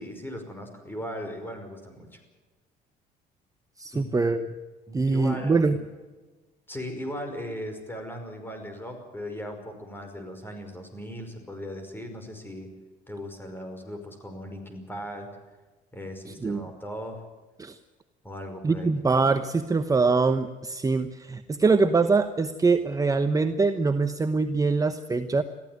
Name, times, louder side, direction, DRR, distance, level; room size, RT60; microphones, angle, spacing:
voice 1, 0.0-2.2 3.9-4.1 4.9-5.8 6.7-12.7 13.1-15.3 15.9-17.2 18.2-18.9, equal, 10° left, 6 dB, 5.5 m, -38 dB
voice 2, 3.8-4.5 4.9-5.8 16.4-16.6 17.6-17.8 18.6-25.4, right 4 dB, 20° right, 8 dB, 1.0 m, -23 dB
22.0 x 15.0 x 9.5 m, 1.3 s
cardioid pair, 110°, 17 cm